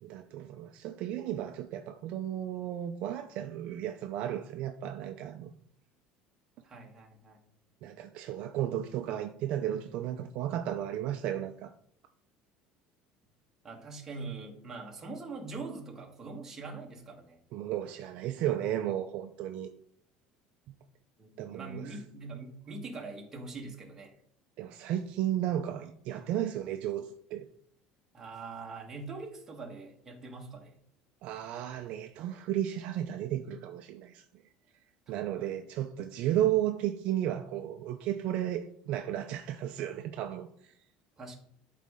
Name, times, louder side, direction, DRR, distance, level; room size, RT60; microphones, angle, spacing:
voice 1, 0.0-5.5 7.8-11.7 17.5-19.7 20.7-20.8 21.4-22.0 24.6-27.5 31.2-34.2 35.1-40.7, right 11 dB, 50° right, 0.5 m, -34 dB
voice 2, 6.6-7.4 13.6-17.4 21.2-24.1 28.1-30.8 35.1-35.6 41.2-41.3, right 3 dB, 15° right, 1.4 m, -43 dB
11.5 x 4.2 x 3.6 m
cardioid pair, 170°, 3 cm